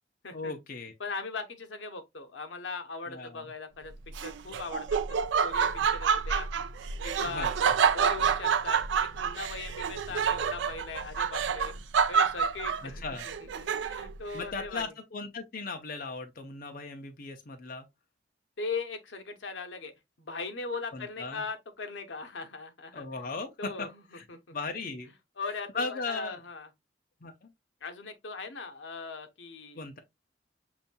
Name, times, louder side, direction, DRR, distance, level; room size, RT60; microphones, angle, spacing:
voice 1, 0.3-0.9 3.1-3.4 7.2-7.6 12.8-13.3 14.3-17.9 20.9-21.4 22.9-23.9 24.1-24.2 24.5-25.1 25.7-26.4 27.2-27.5 29.8-30.0, left 3 dB, 50° left, 0.6 m, -37 dB
voice 2, 1.0-3.9 4.2-6.5 7.0-7.5 7.8-11.7 12.1-14.8 18.6-19.9 20.2-23.0 23.6-23.9 24.3-24.5 25.4-26.7 27.8-29.8, left 4 dB, 90° left, 0.8 m, -39 dB
Laughter, 4.1-14.2, right 6 dB, 75° right, 0.4 m, -28 dB
7.0 x 2.7 x 2.2 m
head